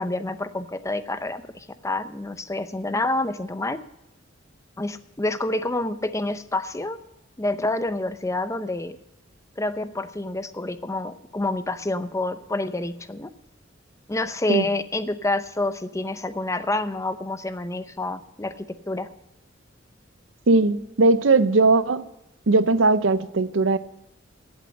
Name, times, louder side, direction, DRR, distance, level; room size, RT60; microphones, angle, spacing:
voice 1, 0.0-3.8 4.8-7.0 7.4-9.0 9.6-13.3 14.1-19.1, left 2 dB, 15° left, 0.7 m, -28 dB
voice 2, 20.5-22.0 22.5-23.8, right 3 dB, 80° right, 0.7 m, -19 dB
16.0 x 8.3 x 6.5 m
head